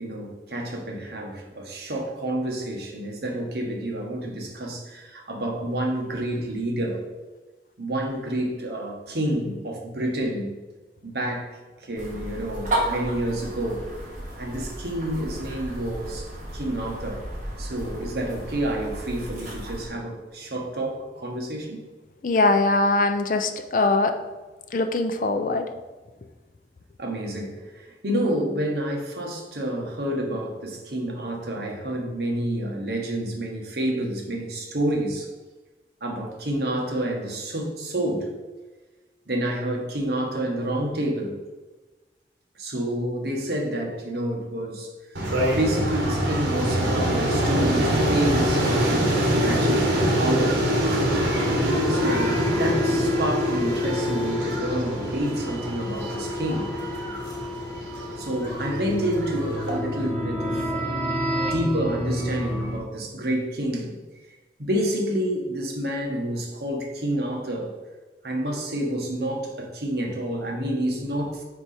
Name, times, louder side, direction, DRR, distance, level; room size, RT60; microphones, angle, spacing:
voice 1, 0.0-7.0 7.8-10.5 11.0-11.5 11.8-13.8 14.4-17.2 17.6-21.8 27.0-35.3 36.0-38.3 39.3-41.4 42.6-44.9 45.3-50.6 51.9-56.8 58.2-61.0 61.4-64.0 64.6-67.7 68.2-71.4, right 1 dB, 65° right, 0 dB, 1.2 m, -29 dB
sound 1, 11.9-19.9, right 1 dB, 45° right, 1.5 m, -33 dB
voice 2, 22.2-24.1 24.7-25.7, left 2 dB, 45° left, 7 dB, 0.4 m, -21 dB
sound 2, 45.1-59.8, equal, 80° right, 1.3 m, -25 dB
sound 3, 51.0-62.8, left 1 dB, 5° left, 1.0 m, -30 dB
5.0 x 4.6 x 4.2 m, 1.2 s
head